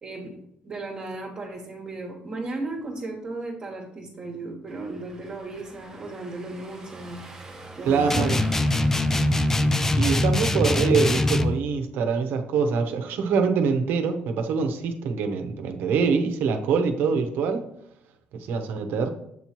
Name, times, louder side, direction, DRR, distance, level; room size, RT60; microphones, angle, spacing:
voice 1, 0.0-0.4 0.6-7.2 7.8-8.3, right 2 dB, 30° right, -1 dB, 1.2 m, -35 dB
Car passing by / Engine, 4.7-11.4, right 1 dB, 15° right, 1.0 m, -45 dB
voice 2, 7.9-8.4 10.0-17.6 18.5-19.1, right 5 dB, 75° right, 6 dB, 0.9 m, -24 dB
sound 1, 8.1-11.6, left 1 dB, 10° left, 0.3 m, -22 dB
7.7 x 3.0 x 5.8 m, 0.77 s
cardioid pair, 155°, 3 cm